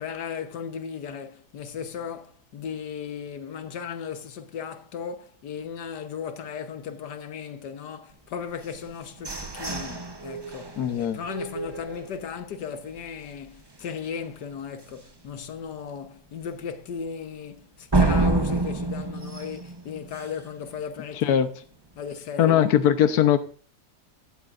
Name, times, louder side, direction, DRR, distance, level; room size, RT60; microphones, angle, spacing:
voice 1, 0.0-21.4 22.0-22.7, left 7 dB, 85° left, 1.7 m, -36 dB
sound 1, 8.6-12.5 13.0-13.1 13.4-13.8 14.2-14.3 14.8-14.9 17.9-20.6, right 2 dB, 20° right, 0.7 m, -28 dB
voice 2, 10.8-11.2 21.2-21.5 22.4-23.4, left 10 dB, 70° left, 1.4 m, -20 dB
16.0 x 12.0 x 2.5 m
omnidirectional pair, 1.7 m